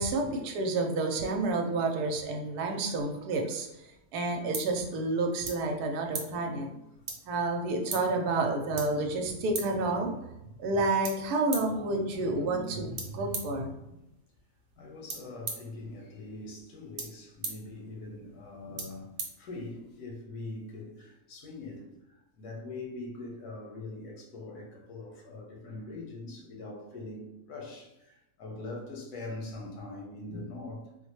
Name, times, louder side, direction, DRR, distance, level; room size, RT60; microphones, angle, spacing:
voice 1, 0.0-6.8 7.3-10.2 10.6-13.7, right 2 dB, 85° right, 3 dB, 1.1 m, -30 dB
sound 1, 3.8-20.0, right 4 dB, 55° right, 0.9 m, -44 dB
voice 2, 14.8-30.9, left 2 dB, 85° left, -1 dB, 1.4 m, -42 dB
4.0 x 2.1 x 3.0 m, 0.89 s
omnidirectional pair, 1.6 m